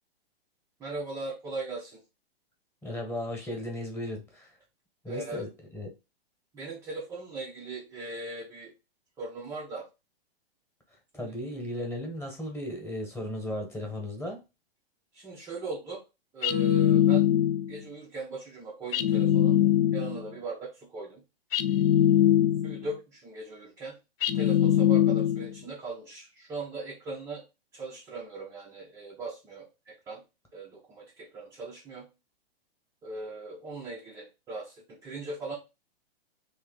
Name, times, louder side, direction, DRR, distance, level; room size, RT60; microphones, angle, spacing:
voice 1, 0.8-2.0 5.1-5.4 6.5-8.7 9.2-9.8 11.1-11.3 15.1-16.0 16.3-17.3 17.7-19.6 19.9-21.2 22.6-24.0 24.3-27.4 27.7-30.2 30.5-32.1 33.0-35.6, right 2 dB, 10° right, -2 dB, 0.4 m, -39 dB
voice 2, 2.8-4.6 5.0-5.9 11.1-14.4, left 1 dB, 10° left, 0 dB, 1.1 m, -36 dB
sound 1, 16.4-17.8 18.9-20.3 21.5-22.9 24.2-25.6, left 11 dB, 65° left, 0.5 m, -22 dB
3.2 x 2.7 x 3.7 m, 0.26 s
hypercardioid pair, 130°, 31 cm